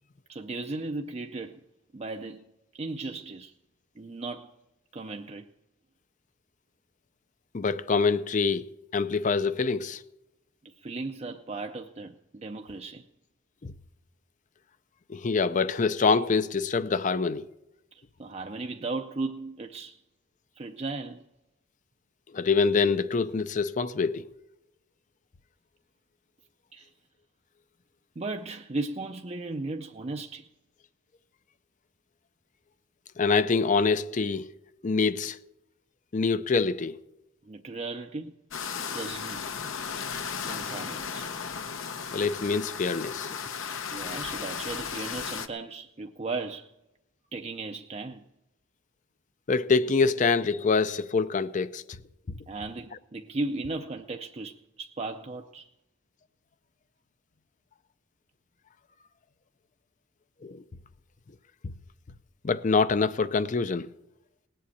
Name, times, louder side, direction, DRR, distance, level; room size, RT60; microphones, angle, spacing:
voice 1, 0.3-1.6 1.9-2.4 2.7-3.5 4.0-4.5 4.9-5.5 10.6-13.1 17.9-20.0 20.6-21.2 26.7-26.9 28.2-30.5 37.4-38.3 38.7-39.5 40.4-41.3 43.9-46.7 47.3-48.2 52.5-55.7, right 3 dB, 30° right, 0.5 m, -36 dB
voice 2, 7.5-10.0 13.6-13.7 15.1-17.5 22.3-24.3 33.2-34.5 34.8-35.4 36.1-37.0 42.1-43.3 49.5-52.0 52.3-52.4 60.4-60.6 61.6-61.7 62.4-63.9, left 4 dB, 40° left, 0.5 m, -25 dB
sound 1, 38.5-45.5, left 6 dB, 80° left, 0.9 m, -35 dB
18.5 x 7.7 x 8.4 m
head